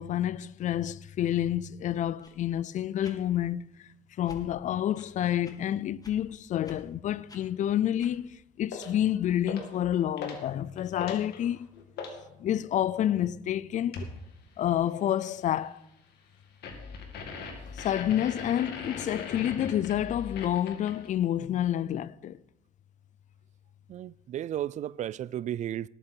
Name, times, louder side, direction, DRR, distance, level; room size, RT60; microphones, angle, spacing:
voice 1, 0.0-3.9 4.2-11.7 12.4-14.1 14.6-15.8 17.7-22.4, left 11 dB, 45° left, 0.4 m, -29 dB
sound 1, 2.2-2.4 3.0-3.2 4.2-4.4 4.9-5.1 5.4-5.6 6.0-6.2 6.6-6.8 7.3-7.4 8.0-8.1, left 2 dB, 20° left, 2.2 m, -51 dB
sound 2, 8.7-9.0 9.5-9.8 10.2-10.5 10.8-12.2 13.9-14.2 16.6-21.1, left 4 dB, 75° left, 2.3 m, -40 dB
voice 2, 23.9-25.9, right 11 dB, 45° right, 0.4 m, -34 dB
18.5 x 8.9 x 4.5 m
cardioid pair, 110°, 17 cm